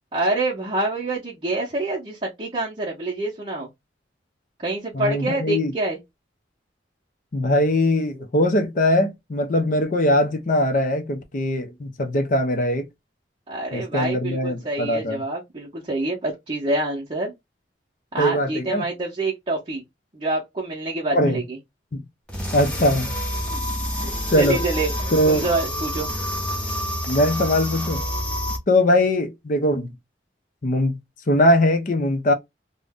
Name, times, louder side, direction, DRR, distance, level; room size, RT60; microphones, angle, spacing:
voice 1, 0.1-3.7 4.6-6.0 13.5-17.3 18.1-19.8 20.1-21.6 23.9-26.1, right 2 dB, 30° right, 0.7 m, -26 dB
voice 2, 4.9-5.7 7.3-12.9 13.7-15.2 18.2-18.9 21.1-21.4 21.9-22.0 22.5-23.1 24.3-24.6 25.1-25.4 27.1-28.0 28.7-29.9 30.6-31.0 31.3-32.3, left 1 dB, 45° left, 0.5 m, -21 dB
sound 1, 22.3-28.6, equal, 5° left, 0.7 m, -28 dB
2.5 x 2.1 x 3.4 m
head